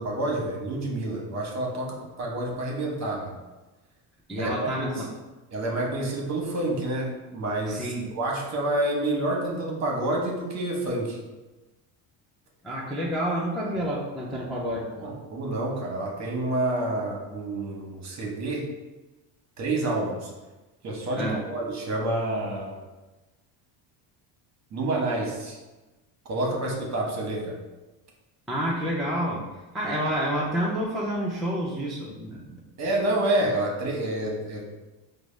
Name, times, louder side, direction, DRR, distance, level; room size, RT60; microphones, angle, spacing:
voice 1, 0.0-3.3 4.4-5.0 5.5-11.2 15.0-18.7 19.6-20.3 20.8-22.8 24.7-25.6 26.3-27.6 32.8-34.7, right 1 dB, 40° right, -1 dB, 0.9 m, -28 dB
voice 2, 4.3-5.1 7.7-8.0 12.6-15.1 21.2-21.4 28.5-29.5 29.7-32.6, equal, ahead, -6 dB, 0.4 m, -29 dB
4.7 x 2.1 x 3.1 m, 1.1 s
cardioid pair, 120°, 44 cm